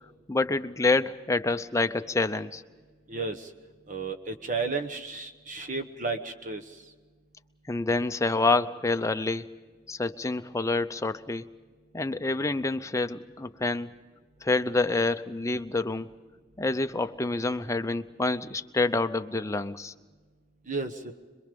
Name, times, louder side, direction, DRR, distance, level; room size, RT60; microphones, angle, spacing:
voice 1, 0.3-2.6 7.7-9.4 9.9-11.5 11.9-13.9 14.4-16.1 16.6-19.9, left 3 dB, 15° left, 9 dB, 0.7 m, -27 dB
voice 2, 3.1-3.5 3.9-6.6 20.7-21.1, right 4 dB, 45° right, 7 dB, 1.1 m, -33 dB
26.0 x 22.5 x 5.3 m, 1.4 s
head